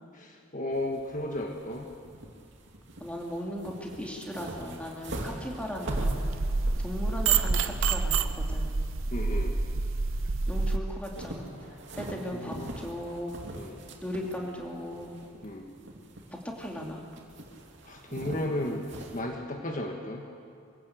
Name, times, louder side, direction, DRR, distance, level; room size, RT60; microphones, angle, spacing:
voice 1, 0.1-1.9 9.1-9.5 12.3-12.7 13.5-13.7 15.4-15.6 17.9-18.8 19.1-20.2, left 1 dB, 40° left, 2 dB, 1.5 m, -34 dB
sound 1, 0.7-19.2, right 1 dB, 60° right, 2.7 m, -43 dB
voice 2, 3.0-6.2 6.8-8.8 10.5-11.5 11.9-13.3 14.0-15.1 16.4-17.0, equal, 5° left, -1 dB, 2.6 m, -37 dB
sound 2, 5.9-10.8, right 4 dB, 80° right, 0.9 m, -27 dB
23.5 x 16.5 x 8.0 m, 2.4 s
head